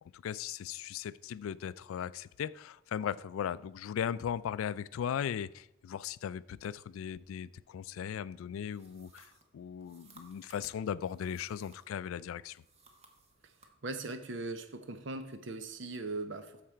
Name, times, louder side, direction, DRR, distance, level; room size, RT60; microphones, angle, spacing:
voice 1, 0.0-12.6, left 8 dB, 85° left, 0.3 m, -38 dB
sound 1, 8.7-12.0 12.4-13.7, right 3 dB, 30° right, 1.1 m, -60 dB
voice 2, 13.8-16.6, right 2 dB, 60° right, 0.8 m, -39 dB
8.5 x 6.6 x 4.4 m
head